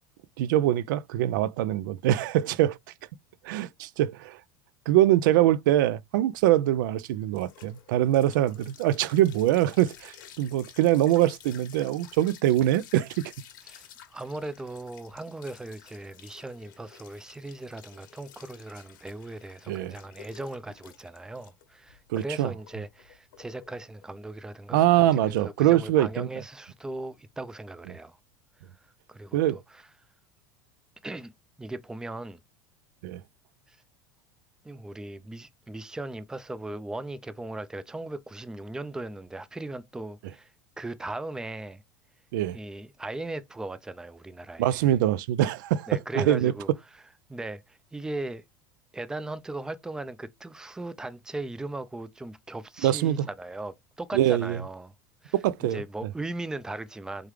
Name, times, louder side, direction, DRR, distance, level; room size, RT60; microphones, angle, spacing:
voice 1, 0.4-2.8 3.4-4.4 4.9-13.2 19.7-19.9 22.1-22.5 24.7-26.3 29.3-29.6 33.0-33.2 42.3-42.6 44.6-45.9 46.1-46.5 52.8-53.3 54.1-54.6 55.3-55.8, right 13 dB, 75° right, 0.4 m, -23 dB
sound 1, 6.3-25.4, left 9 dB, 80° left, 1.1 m, -53 dB
voice 2, 13.6-28.2 29.1-29.8 31.0-31.3 31.6-32.4 33.7-33.8 34.6-40.5 40.8-41.8 42.5-44.9 45.9-46.7 47.3-48.4 48.9-54.9 55.2-55.3 55.6-57.3, right 2 dB, 5° right, 0.4 m, -38 dB
3.6 x 3.2 x 3.2 m
supercardioid pair, 110°, 10 cm